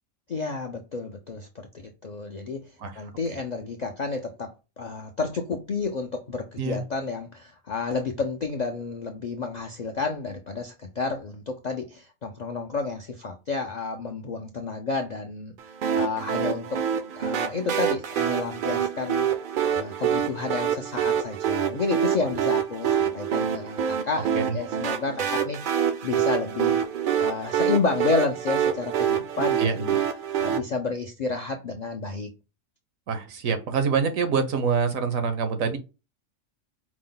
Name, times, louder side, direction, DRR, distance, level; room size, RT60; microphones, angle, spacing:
voice 1, 0.3-16.8 17.1-19.3 19.7-26.8 27.2-30.0 30.4-32.3, left 4 dB, 65° left, 0.4 m, -31 dB
sound 1, 15.8-30.6, right 8 dB, 65° right, 0.5 m, -26 dB
voice 2, 29.4-29.9 33.1-35.8, right 5 dB, 90° right, 1.3 m, -26 dB
5.0 x 2.1 x 3.8 m
omnidirectional pair, 1.4 m